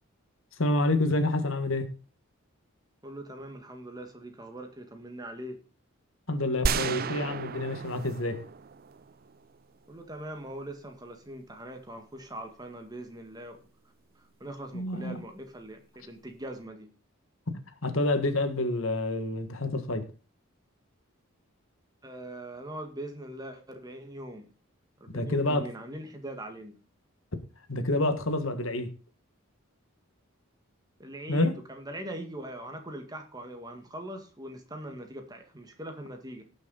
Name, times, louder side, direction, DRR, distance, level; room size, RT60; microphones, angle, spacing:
voice 1, 0.6-1.9 6.3-8.4 14.7-15.2 17.8-20.1 25.1-25.7 27.7-28.9 31.3-31.5, left 2 dB, 75° left, 8 dB, 1.7 m, -28 dB
voice 2, 3.0-5.6 9.9-13.6 14.2-16.9 22.0-24.5 25.0-26.8 31.0-36.4, right 1 dB, 20° right, 5 dB, 1.8 m, -41 dB
sound 1, 6.7-9.6, right 5 dB, 45° right, 0.5 m, -33 dB
17.5 x 6.4 x 4.1 m, 0.36 s
head